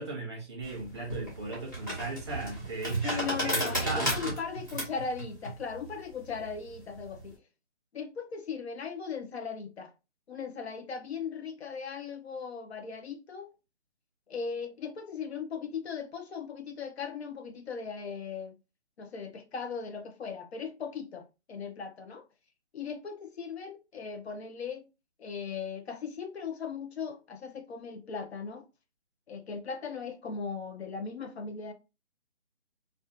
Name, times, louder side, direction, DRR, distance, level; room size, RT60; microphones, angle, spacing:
voice 1, 0.0-4.4, right 2 dB, 25° right, 0.6 m, -37 dB
sound 1, 0.6-7.3, right 1 dB, 15° left, 0.5 m, -34 dB
voice 2, 3.0-7.4 7.9-9.9 10.3-13.5 14.3-18.5 19.0-22.2 22.7-24.9 25.2-28.7 29.3-31.7, left 6 dB, 65° left, 0.7 m, -38 dB
2.4 x 2.4 x 2.3 m
hypercardioid pair, 160°, 35 cm